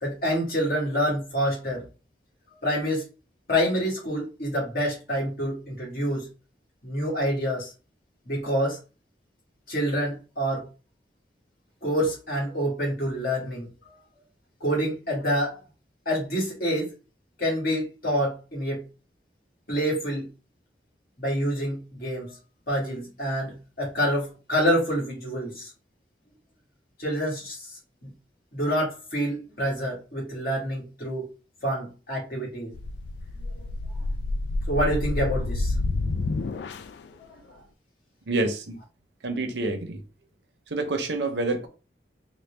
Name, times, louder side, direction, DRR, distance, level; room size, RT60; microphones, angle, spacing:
voice 1, 0.0-1.9 2.6-3.1 3.5-6.3 6.8-7.7 8.3-8.8 9.7-10.7 11.8-13.7 14.6-15.6 16.1-16.9 17.4-18.8 19.7-20.3 21.2-22.4 22.7-25.7 27.0-27.7 28.0-28.1 28.5-31.3 31.6-32.7 33.4-33.5 34.7-35.7, equal, 55° left, 1.9 m, -27 dB
sound 1, 32.7-37.1, left 2 dB, 80° left, 0.4 m, -29 dB
voice 2, 38.3-38.8 39.2-40.0 40.7-41.7, right 2 dB, 90° right, 0.8 m, -27 dB
4.0 x 2.2 x 3.3 m
head